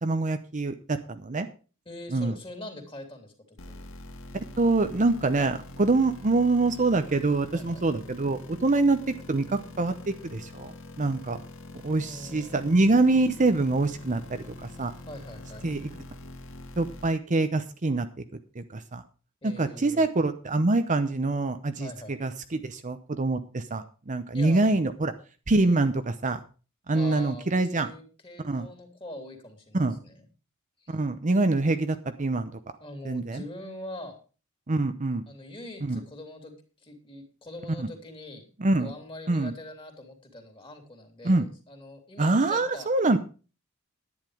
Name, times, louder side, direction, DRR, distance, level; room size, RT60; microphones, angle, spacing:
voice 1, 0.0-1.5 2.1-2.3 4.6-9.0 9.3-11.4 11.8-14.9 15.6-15.9 16.8-18.2 18.5-19.0 19.4-25.1 25.5-26.4 26.9-27.9 28.4-28.7 29.7-30.0 30.9-32.5 33.0-33.4 34.7-35.2 35.8-36.0 37.8-37.9 38.6-38.9 39.3-39.5 41.2-41.5 42.2-43.2, right 2 dB, 35° right, 9 dB, 0.8 m, -25 dB
voice 2, 1.8-3.8 7.5-7.8 12.0-12.7 15.1-15.6 19.4-20.0 21.8-22.1 24.3-24.9 25.5-25.9 26.9-30.2 30.8-31.0 32.8-34.2 35.3-36.5 36.8-38.4 38.8-42.9, left 1 dB, 25° left, 4 dB, 3.1 m, -43 dB
sound 1, 3.6-17.1, left 2 dB, 65° left, 1.6 m, -44 dB
10.5 x 9.9 x 4.9 m, 0.35 s
head